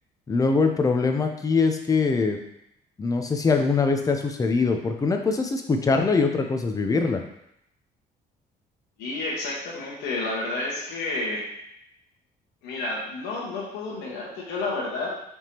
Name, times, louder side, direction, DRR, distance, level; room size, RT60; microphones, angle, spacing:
voice 1, 0.3-2.4 3.0-7.2, left 4 dB, 20° left, 5 dB, 0.5 m, -23 dB
voice 2, 9.0-11.4 12.6-15.1, left 2 dB, 85° left, -4 dB, 1.3 m, -30 dB
4.8 x 3.5 x 2.9 m, 0.77 s
cardioid pair, 110°, 17 cm